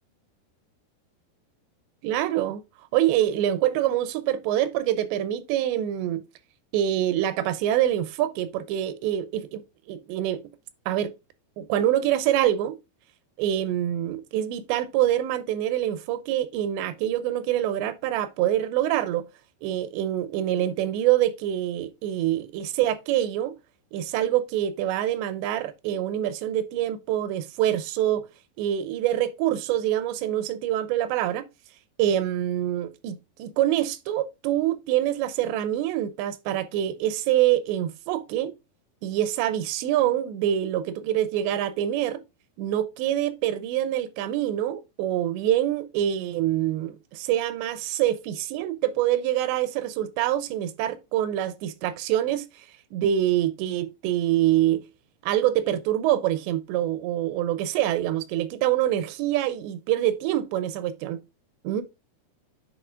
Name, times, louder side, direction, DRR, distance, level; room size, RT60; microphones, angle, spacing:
voice 1, 2.0-2.6 2.9-6.2 6.7-9.6 9.9-10.4 10.9-11.1 11.6-12.8 13.4-19.3 19.6-23.5 23.9-28.3 28.6-31.4 32.0-38.5 39.0-42.2 42.6-52.5 52.9-54.8 55.2-61.2 61.6-61.8, right 12 dB, 85° right, 2.8 m, -25 dB
10.0 x 4.4 x 2.4 m
omnidirectional pair, 5.0 m